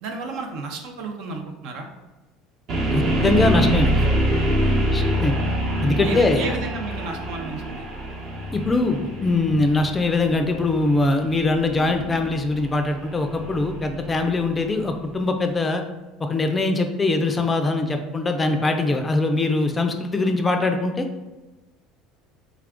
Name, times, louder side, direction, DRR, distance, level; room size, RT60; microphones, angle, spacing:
voice 1, 0.0-1.9 6.0-7.9, right 3 dB, 65° right, 3 dB, 0.6 m, -32 dB
sound 1, 2.7-14.6, right 1 dB, 50° right, 0.9 m, -25 dB
voice 2, 2.9-4.1 4.9-5.3 5.8-6.5 8.5-15.8 16.2-21.1, left 2 dB, 20° left, 6 dB, 0.4 m, -22 dB
3.3 x 2.4 x 3.5 m, 1.1 s
supercardioid pair, 105°, 0 cm